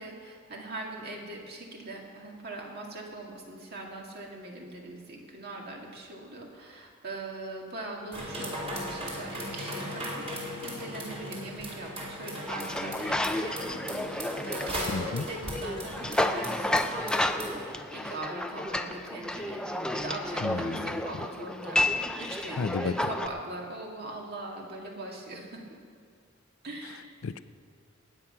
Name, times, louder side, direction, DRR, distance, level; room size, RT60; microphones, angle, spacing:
voice 1, 0.0-25.6 26.6-27.1, right 2 dB, 50° right, -1 dB, 2.3 m, -41 dB
sound 1, 8.1-17.7, equal, 30° right, 3.6 m, -37 dB
sound 2, 12.5-23.3, left 1 dB, 5° left, 0.5 m, -31 dB
voice 2, 14.9-15.2 20.4-20.8 22.6-22.9 27.2-27.4, left 5 dB, 75° left, 14 dB, 0.5 m, -31 dB
19.5 x 8.8 x 5.8 m, 2.1 s
head